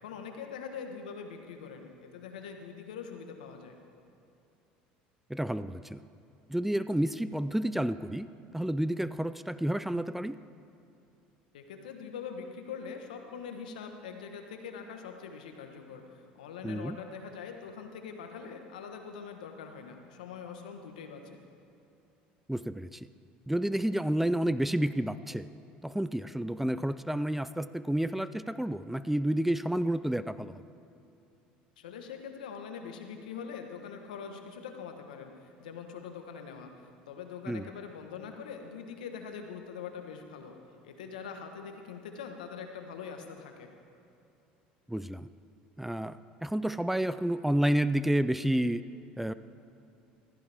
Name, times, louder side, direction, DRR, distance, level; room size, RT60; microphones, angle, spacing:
voice 1, 0.0-3.7 11.5-21.4 31.8-36.7 37.1-40.6 40.8-43.7, left 6 dB, 90° left, 5 dB, 1.3 m, -43 dB
voice 2, 5.3-6.0 6.5-8.3 8.5-10.4 16.6-17.0 22.5-23.0 23.5-25.5 25.8-30.5 37.5-37.6 44.9-45.3 45.8-48.8 49.2-49.3, right 1 dB, 5° right, 14 dB, 0.4 m, -30 dB
15.5 x 14.5 x 3.5 m, 2.7 s
hypercardioid pair, 80°, 4 cm